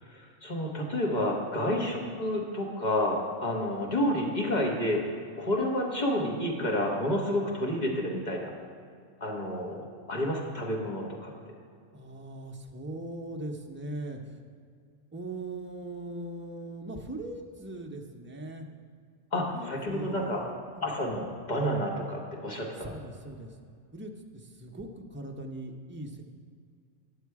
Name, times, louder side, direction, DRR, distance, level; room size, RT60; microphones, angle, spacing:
voice 1, 0.0-8.5 9.2-11.3 19.3-20.4 20.8-22.9, left 1 dB, 35° left, -1 dB, 1.5 m, -30 dB
voice 2, 11.9-14.4 15.1-18.7 19.5-20.8 22.8-23.5 23.9-26.2, right 1 dB, 15° right, 1 dB, 0.5 m, -40 dB
9.8 x 7.2 x 4.7 m, 2.2 s
omnidirectional pair, 1.3 m